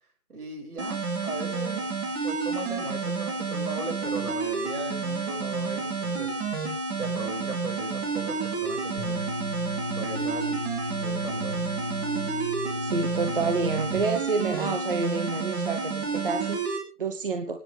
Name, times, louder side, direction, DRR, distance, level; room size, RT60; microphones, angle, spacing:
voice 1, 0.3-1.8 2.2-6.3 7.0-9.3 9.9-10.6 11.0-11.6, right 3 dB, 70° right, 3 dB, 6.7 m, -37 dB
sound 1, 0.8-16.8, right 4 dB, 15° right, 2.8 m, -30 dB
sound 2, 9.0-14.0, left 2 dB, 15° left, 2.6 m, -36 dB
voice 2, 12.8-17.6, right 4 dB, 35° right, 6 dB, 1.2 m, -29 dB
25.0 x 10.0 x 3.5 m, 0.34 s
figure-of-eight pair, 160°, 46 cm